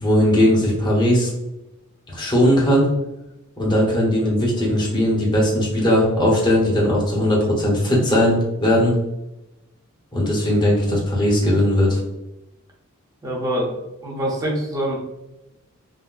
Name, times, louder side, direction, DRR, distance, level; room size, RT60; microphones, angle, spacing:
voice 1, 0.0-1.3 2.1-2.9 3.6-9.0 10.1-12.0, left 1 dB, 20° left, -4 dB, 0.8 m, -18 dB
voice 2, 13.2-13.7 14.0-15.0, right 1 dB, 15° right, -4 dB, 0.6 m, -24 dB
3.7 x 2.1 x 2.4 m, 0.94 s
head